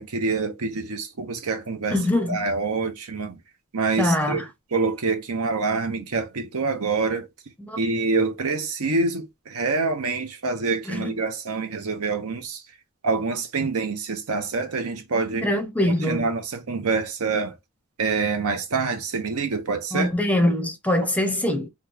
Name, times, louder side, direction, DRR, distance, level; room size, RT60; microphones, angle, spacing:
voice 1, 0.0-2.0 2.3-3.4 3.7-4.4 4.7-7.3 7.8-12.6 13.0-15.5 16.0-17.6 18.0-20.1, right 4 dB, 75° right, 0.8 m, -26 dB
voice 2, 1.9-2.5 4.0-4.4 7.7-7.8 10.9-11.1 15.4-16.3 19.9-21.7, left 1 dB, 5° left, 0.6 m, -23 dB
3.0 x 2.3 x 3.5 m
head